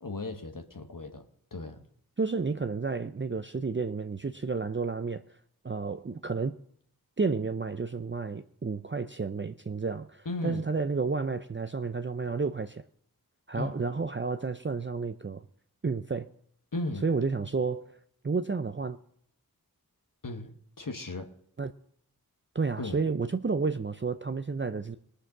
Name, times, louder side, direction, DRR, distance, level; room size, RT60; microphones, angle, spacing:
voice 1, 0.0-1.2 1.5-1.8 10.2-10.7 13.5-13.7 16.7-17.1 20.2-21.3 22.8-23.0, left 2 dB, 60° left, 1.2 m, -36 dB
voice 2, 2.2-5.2 5.6-6.6 7.2-12.8 13.5-15.4 15.8-16.3 17.0-17.9 18.2-19.0 21.6-21.7 22.5-25.0, right 4 dB, 30° right, 0.5 m, -31 dB
20.0 x 6.7 x 6.0 m
wide cardioid pair, 50°, 37 cm